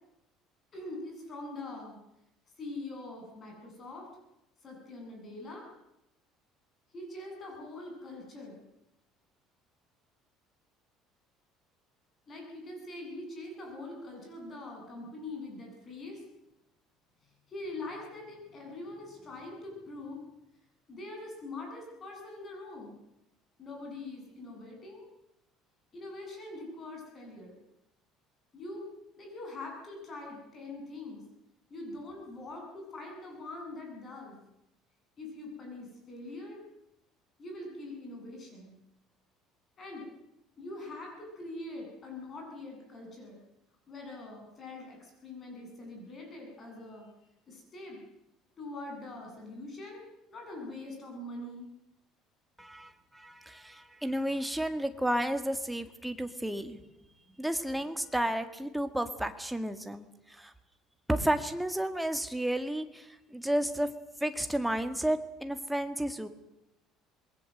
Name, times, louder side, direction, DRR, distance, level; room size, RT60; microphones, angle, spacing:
voice 1, 0.7-2.0 2.6-4.1 4.6-5.7 6.9-8.6 12.3-16.2 17.5-20.2 20.9-23.0 23.6-25.1 25.9-27.6 28.5-28.8 29.1-31.2 31.7-34.4 35.2-36.6 37.4-38.8 39.8-40.0 40.6-43.4 43.9-48.0 48.6-51.7, left 2 dB, 30° left, 1 dB, 7.8 m, -43 dB
voice 2, 52.6-56.8 57.4-60.5 61.1-63.9 64.2-66.3, right 1 dB, 5° right, 8 dB, 1.8 m, -32 dB
27.0 x 21.0 x 7.9 m, 0.87 s
cardioid pair, 150°, 0 cm